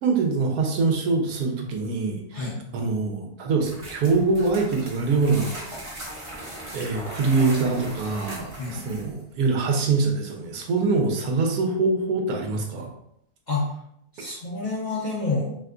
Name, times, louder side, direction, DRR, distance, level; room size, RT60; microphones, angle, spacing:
voice 1, 0.0-2.4 2.7-5.6 6.7-12.9, right 4 dB, 80° right, 2 dB, 1.2 m, -24 dB
sound 1, 3.6-9.2, right 1 dB, 35° right, 0.6 m, -38 dB
voice 2, 14.1-15.6, left 3 dB, 55° left, -5 dB, 0.5 m, -28 dB
2.9 x 2.2 x 3.6 m, 0.73 s
omnidirectional pair, 1.6 m